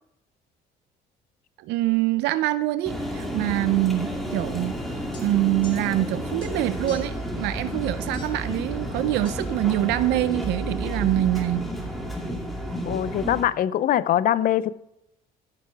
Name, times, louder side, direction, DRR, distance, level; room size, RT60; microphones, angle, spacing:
voice 1, 1.6-11.7, right 15 dB, 85° right, 0.6 m, -25 dB
sound 1, 2.8-13.4, equal, ahead, 2.2 m, -31 dB
sound 2, 5.1-6.1 6.4-7.3 8.1-8.5 9.2-9.4, left 5 dB, 30° left, 2.2 m, -48 dB
voice 2, 12.8-14.7, left 11 dB, 55° left, 0.6 m, -22 dB
15.0 x 6.7 x 4.7 m
cardioid pair, 110°, 17 cm